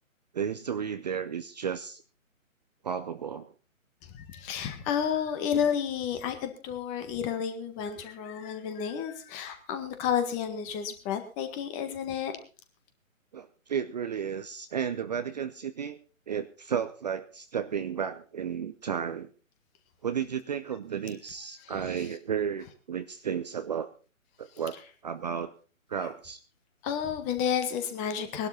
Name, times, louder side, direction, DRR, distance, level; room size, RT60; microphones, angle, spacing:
voice 1, 0.3-2.0 2.8-3.5 13.3-16.0 16.3-19.3 20.0-23.9 24.4-25.5 25.9-26.4, right 7 dB, 30° right, 10 dB, 0.7 m, -33 dB
voice 2, 4.1-12.3 21.6-21.7 26.0-26.1 26.8-28.5, left 8 dB, 15° left, 8 dB, 1.6 m, -31 dB
20.0 x 12.0 x 4.2 m, 0.35 s
figure-of-eight pair, 140°, 41 cm